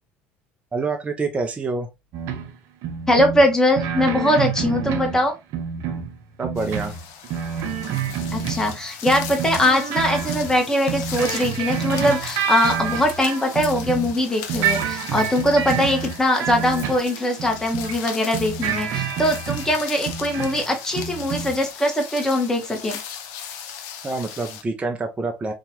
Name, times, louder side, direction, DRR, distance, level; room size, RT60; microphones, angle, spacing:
voice 1, 0.7-1.9 6.4-6.9 24.0-25.5, right 3 dB, 20° right, 0.5 m, -26 dB
sound 1, 2.1-2.5 2.8-5.3 5.5-8.8 9.1-14.2 14.5-18.0 18.3-20.7 20.9-21.6, right 7 dB, 65° right, 0.6 m, -28 dB
voice 2, 3.1-5.3 8.3-23.0, left 1 dB, 10° left, 1.1 m, -21 dB
sound 2, 6.6-24.6, left 8 dB, 70° left, 0.6 m, -38 dB
2.8 x 2.3 x 2.9 m
supercardioid pair, 80°, 5 cm